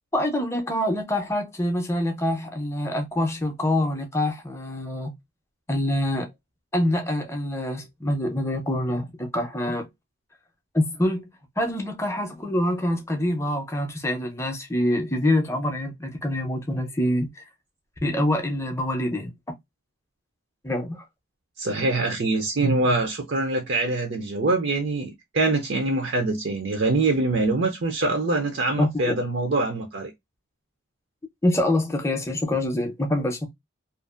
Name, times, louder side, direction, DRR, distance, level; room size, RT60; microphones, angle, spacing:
voice 1, 0.1-5.1 5.7-6.3 6.7-9.9 10.7-11.3 11.6-17.4 18.0-19.3 20.6-21.0 28.8-29.2 31.4-33.5, left 1 dB, 15° left, 0.5 m, -25 dB
voice 2, 21.6-30.1, right 2 dB, 55° right, 0.5 m, -24 dB
2.5 x 2.4 x 2.4 m
head